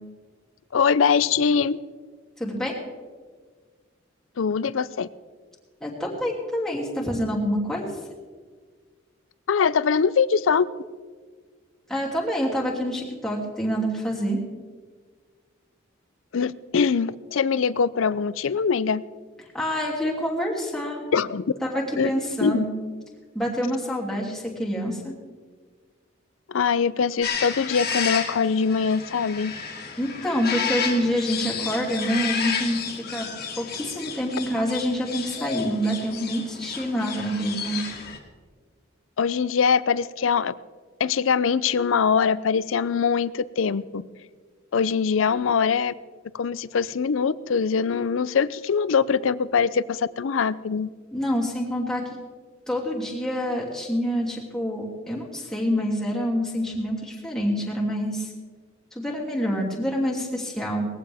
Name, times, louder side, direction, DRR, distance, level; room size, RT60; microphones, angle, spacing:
voice 1, 0.7-1.8 4.4-5.1 9.5-10.6 16.3-19.0 21.1-21.4 22.0-22.1 22.4-22.6 26.5-29.5 39.2-40.5 41.0-44.0 44.7-45.9 46.3-50.9, left 6 dB, 70° left, 18 dB, 0.5 m, -22 dB
voice 2, 2.4-2.7 5.8-7.9 11.9-14.4 19.5-21.0 21.6-22.7 23.3-25.1 30.0-33.3 33.6-37.8 51.1-52.0 52.7-58.3 58.9-60.9, equal, ahead, -4 dB, 2.7 m, -27 dB
sound 1, 27.2-38.2, left 6 dB, 50° left, 2.0 m, -31 dB
20.0 x 15.0 x 3.5 m, 1.5 s
head